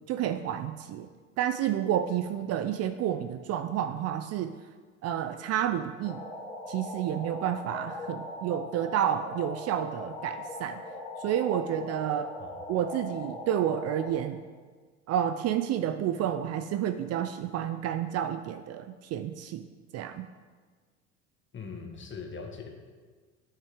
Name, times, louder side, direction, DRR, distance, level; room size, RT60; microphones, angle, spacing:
voice 1, 0.1-1.1 1.4-4.6 5.0-6.2 6.7-10.8 11.2-12.3 12.7-14.4 15.1-19.6 19.9-20.3, right 10 dB, 40° right, 9 dB, 0.5 m, -30 dB
sound 1, 6.0-14.1, left 1 dB, 10° left, 3.2 m, -40 dB
voice 2, 21.5-22.7, left 5 dB, 30° left, 3 dB, 1.6 m, -41 dB
8.8 x 6.6 x 4.9 m, 1.5 s
hypercardioid pair, 75°, 38 cm